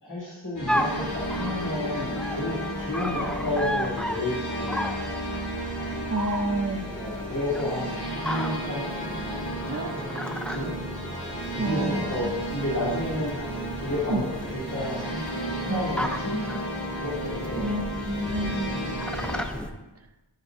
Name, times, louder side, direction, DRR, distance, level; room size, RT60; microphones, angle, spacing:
voice 1, 0.0-4.8 6.9-8.9 9.6-10.7 11.5-13.3 13.8-15.2 15.5-16.4 17.0-17.8 19.5-19.7, left 1 dB, 45° left, -7 dB, 2.8 m, -31 dB
sound 1, 0.6-19.4, equal, 60° left, 2.7 m, -33 dB
sound 2, 0.7-19.7, equal, ahead, 0.5 m, -35 dB
voice 2, 6.1-6.9 9.7-10.0 11.6-12.0 14.1-14.2 15.7-15.8 17.6-18.7, right 2 dB, 35° right, 6 dB, 0.8 m, -29 dB
11.0 x 7.3 x 2.7 m, 1.0 s
wide cardioid pair, 50°, 44 cm